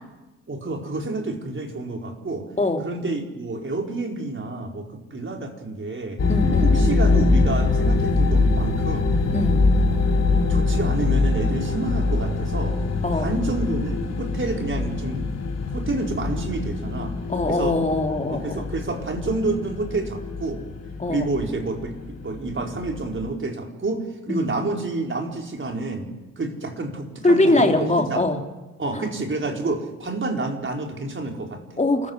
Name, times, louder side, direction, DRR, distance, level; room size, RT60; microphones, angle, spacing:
voice 1, 0.5-2.5 2.8-6.2 6.6-9.1 10.5-12.8 13.1-15.3 15.7-17.1 17.5-17.7 18.3-20.6 21.1-26.1 26.4-28.2 28.8-31.6, right 2 dB, 30° right, 2 dB, 4.7 m, -29 dB
sound 1, 6.2-23.3, left 3 dB, 40° left, 3.3 m, -23 dB
voice 2, 6.3-6.9 9.3-9.6 13.0-13.3 17.3-18.6 21.0-21.3 24.3-24.5 27.2-28.4 31.8-32.1, left 2 dB, 20° left, 3 dB, 3.4 m, -22 dB
29.0 x 14.0 x 8.1 m, 1.1 s
figure-of-eight pair, 45°, 38 cm